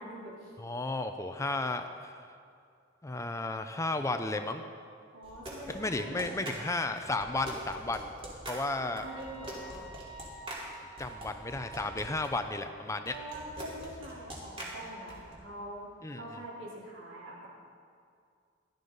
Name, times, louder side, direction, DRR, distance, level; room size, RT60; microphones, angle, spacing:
voice 1, 0.0-0.5 5.1-6.4 8.5-9.9 13.0-15.9 16.1-17.5, right 1 dB, 85° right, -5 dB, 3.6 m, -44 dB
voice 2, 0.6-2.3 3.0-4.6 5.7-8.1 8.5-9.0 11.0-13.1 16.0-16.2, left 2 dB, 15° left, 7 dB, 0.5 m, -33 dB
sound 1, 5.2-12.3 13.0-15.3, right 1 dB, 30° right, 2.7 m, -44 dB
sound 2, 9.0-12.3, right 2 dB, 15° right, 3.3 m, -50 dB
16.0 x 12.0 x 4.0 m, 2.3 s
head